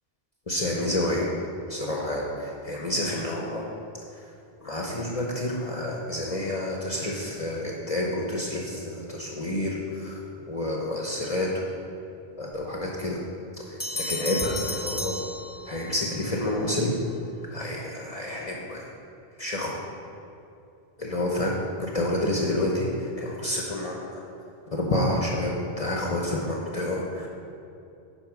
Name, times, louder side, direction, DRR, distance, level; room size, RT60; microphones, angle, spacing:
voice 1, 0.5-1.3 1.7-3.7 4.6-10.2 10.5-11.6 12.4-13.2 13.7-15.2 15.7-17.0 17.5-18.9 19.4-19.7 21.0-24.3 24.7-27.3, left 1 dB, 40° left, -2 dB, 0.9 m, -29 dB
sound 1, 13.8-16.0, left 2 dB, 10° left, 1.0 m, -33 dB
9.6 x 4.2 x 5.9 m, 2.6 s
omnidirectional pair, 1.0 m